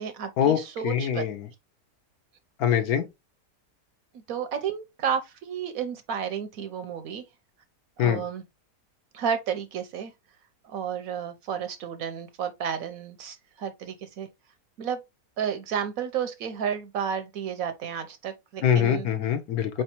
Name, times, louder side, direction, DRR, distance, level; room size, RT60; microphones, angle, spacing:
voice 1, 0.0-1.5 4.3-7.2 8.0-8.4 9.1-10.1 10.6-14.3 14.8-15.0 15.4-19.1 19.7-19.8, right 7 dB, 70° right, 0.9 m, -32 dB
voice 2, 0.8-1.4 2.6-3.1 8.0-8.2 18.6-19.8, left 9 dB, 70° left, 1.2 m, -23 dB
4.5 x 3.4 x 2.9 m
omnidirectional pair, 1.8 m